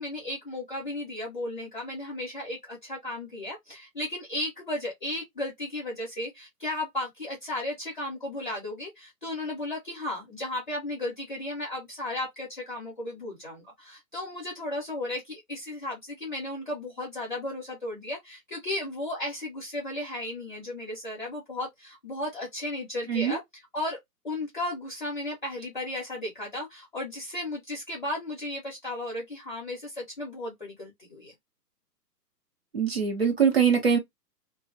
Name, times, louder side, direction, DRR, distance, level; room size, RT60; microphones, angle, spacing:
voice 1, 0.0-24.0 24.2-31.3, left 1 dB, 30° left, 0.7 m, -35 dB
voice 2, 23.1-23.4 32.7-34.0, right 7 dB, 40° right, 0.6 m, -23 dB
2.4 x 2.1 x 2.4 m
hypercardioid pair, 175°, 49 cm